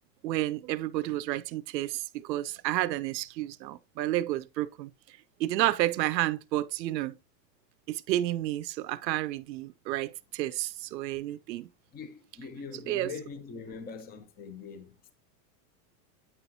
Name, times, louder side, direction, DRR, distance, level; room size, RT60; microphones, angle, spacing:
voice 1, 0.2-4.9 5.4-7.2 7.9-11.7 12.9-13.1, right 15 dB, 85° right, 0.7 m, -31 dB
voice 2, 11.9-15.1, left 5 dB, 20° left, 0.7 m, -42 dB
8.8 x 5.5 x 2.8 m
supercardioid pair, 140°, 50 cm